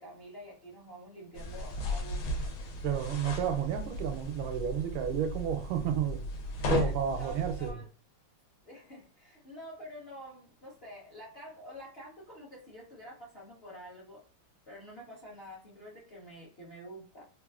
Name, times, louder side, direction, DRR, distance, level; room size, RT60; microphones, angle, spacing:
voice 1, 0.0-2.5 6.6-6.9 7.2-7.9 8.6-14.2 14.7-17.2, equal, 55° left, 0.6 m, -48 dB
sound 1, 1.3-7.7, left 2 dB, 90° left, 1.5 m, -36 dB
voice 2, 2.8-6.2 6.6-7.8, right 9 dB, 85° right, 1.4 m, -31 dB
3.4 x 2.4 x 2.3 m
omnidirectional pair, 2.2 m